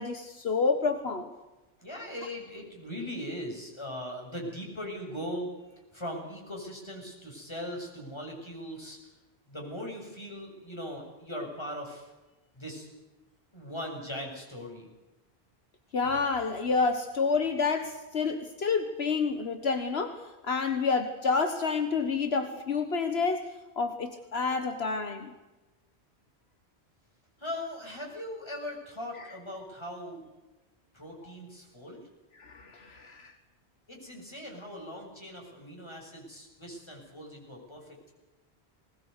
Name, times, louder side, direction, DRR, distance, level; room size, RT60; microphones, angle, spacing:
voice 1, 0.0-1.3 15.9-25.3 31.2-31.3 32.4-33.3, left 4 dB, 70° left, 7 dB, 1.6 m, -29 dB
voice 2, 1.8-9.0 9.5-12.1 12.5-12.9 13.5-14.9 27.4-30.2 30.9-32.0 33.9-38.1, equal, 25° left, 0 dB, 6.7 m, -40 dB
20.5 x 20.0 x 8.2 m, 1.1 s
omnidirectional pair, 1.1 m